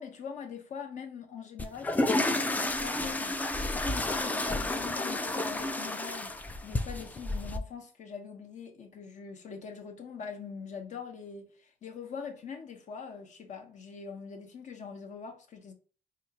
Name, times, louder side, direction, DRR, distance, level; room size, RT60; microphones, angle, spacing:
voice 1, 0.0-15.7, left 6 dB, 45° left, 0.9 m, -43 dB
sound 1, 1.6-7.6, left 2 dB, 10° left, 0.3 m, -31 dB
4.2 x 2.5 x 2.9 m
cardioid pair, 110°, 17 cm